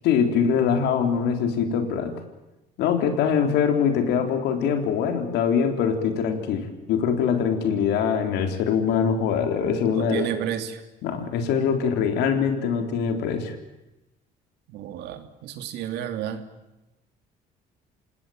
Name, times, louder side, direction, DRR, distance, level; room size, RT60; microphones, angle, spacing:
voice 1, 0.0-2.2 2.8-10.3 11.0-13.6, left 7 dB, 85° left, 6 dB, 4.0 m, -23 dB
voice 2, 9.8-10.8 14.7-16.4, right 10 dB, 80° right, 8 dB, 2.9 m, -31 dB
28.5 x 18.5 x 9.0 m, 0.99 s
cardioid pair, 110°, 17 cm